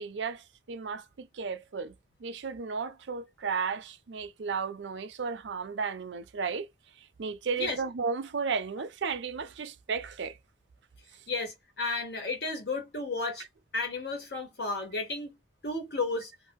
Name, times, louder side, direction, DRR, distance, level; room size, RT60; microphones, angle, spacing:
voice 1, 0.0-1.9 2.2-6.7 7.2-10.4, right 5 dB, 80° right, 0.5 m, -34 dB
voice 2, 7.5-7.8 11.3-13.5 13.7-15.4 15.6-16.3, left 3 dB, 65° left, 1.1 m, -33 dB
2.7 x 2.1 x 3.4 m
head